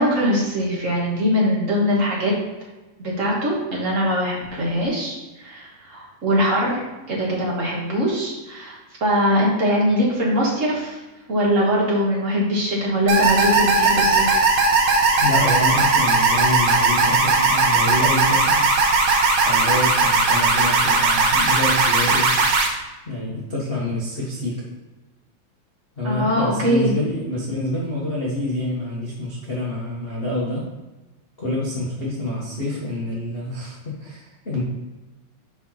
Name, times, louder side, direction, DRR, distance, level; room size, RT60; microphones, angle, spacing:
voice 1, 0.0-2.3 3.0-11.0 11.3-14.4 26.0-27.0, equal, 35° right, -4 dB, 1.3 m, -22 dB
sound 1, 13.1-22.7, right 3 dB, 75° right, 2.5 m, -18 dB
voice 2, 15.2-18.6 19.4-22.3 23.1-24.6 26.0-30.7 31.4-34.6, left 1 dB, 60° left, -7 dB, 0.6 m, -27 dB
5.6 x 4.8 x 5.8 m, 1.1 s
omnidirectional pair, 3.6 m